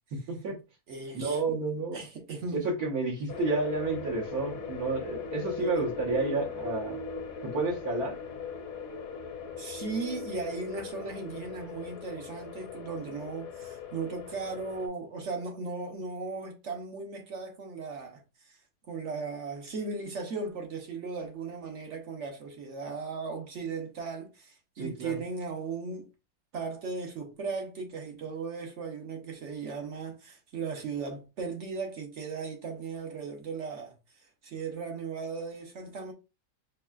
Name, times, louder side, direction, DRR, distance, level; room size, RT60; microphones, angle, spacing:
voice 1, 0.1-0.6 1.1-2.0 2.5-7.0 7.4-8.2 24.8-25.2, right 3 dB, 70° right, 1.6 m, -30 dB
voice 2, 0.9-1.6 1.9-2.6 5.6-5.7 9.6-18.6 18.9-26.1 26.5-36.1, right 4 dB, 55° right, 1.1 m, -37 dB
sound 1, 3.3-14.9, left 5 dB, 65° left, 1.2 m, -39 dB
5.5 x 2.3 x 2.3 m
omnidirectional pair, 1.6 m